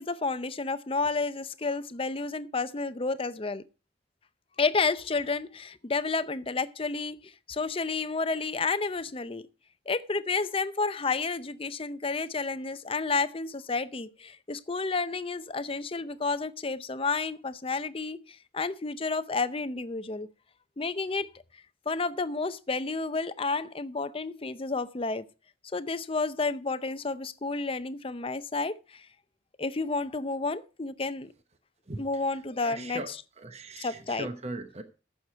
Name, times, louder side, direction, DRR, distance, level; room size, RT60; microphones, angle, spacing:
voice 1, 0.0-3.6 4.6-9.5 9.9-20.3 20.8-21.3 21.9-25.2 25.7-29.1 29.6-31.3 32.0-33.0 33.8-34.3, left 4 dB, 30° left, 0.6 m, -31 dB
voice 2, 31.9-34.8, right 2 dB, 35° right, 0.9 m, -40 dB
15.0 x 6.6 x 4.6 m
head